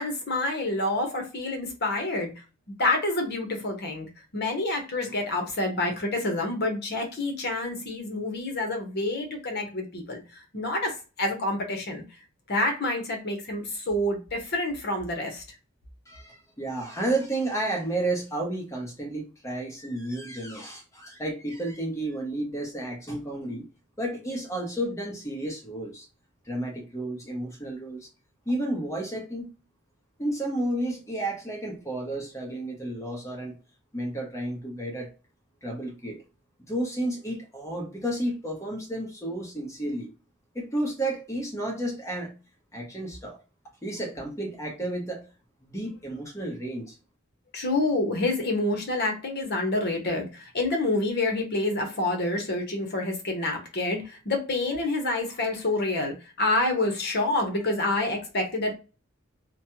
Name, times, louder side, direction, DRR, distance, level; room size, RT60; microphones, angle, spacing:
voice 1, 0.0-2.3 2.8-4.1 4.3-10.2 10.5-12.0 12.5-15.4 47.5-58.8, left 2 dB, 50° left, 1.0 m, -28 dB
voice 2, 16.1-23.6 24.0-26.1 26.5-28.1 28.5-29.5 30.2-33.6 33.9-35.1 35.6-36.2 36.6-40.1 40.5-42.3 42.7-43.4 43.8-45.3 45.6-47.0, right 1 dB, 15° left, 0.9 m, -32 dB
3.1 x 2.2 x 2.8 m
head